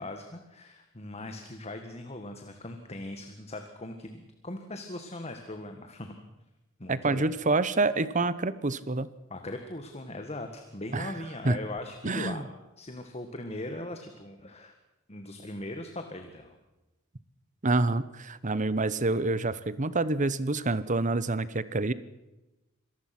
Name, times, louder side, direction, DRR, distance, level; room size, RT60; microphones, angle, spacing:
voice 1, 0.0-6.1 6.8-7.3 9.3-14.7 15.1-16.6, left 1 dB, 30° left, 6 dB, 1.8 m, -40 dB
voice 2, 6.9-9.1 10.9-11.1 11.4-11.6 12.0-12.4 17.6-21.9, right 3 dB, 35° right, 16 dB, 1.0 m, -27 dB
26.0 x 18.5 x 6.0 m, 1.0 s
head